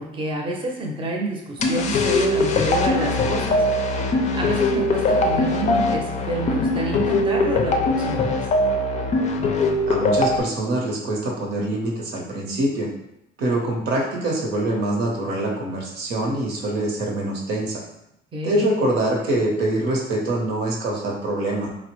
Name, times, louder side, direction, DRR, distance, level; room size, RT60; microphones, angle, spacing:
voice 1, 0.0-8.4 18.3-18.6, right 2 dB, 30° right, 0 dB, 0.6 m, -28 dB
sound 1, 1.6-10.4, left 2 dB, 40° left, 0.4 m, -21 dB
voice 2, 9.9-12.9 13.4-17.8 18.4-21.7, right 1 dB, 85° right, 0 dB, 0.8 m, -24 dB
3.8 x 2.0 x 3.0 m, 0.83 s
cardioid pair, 110°, 17 cm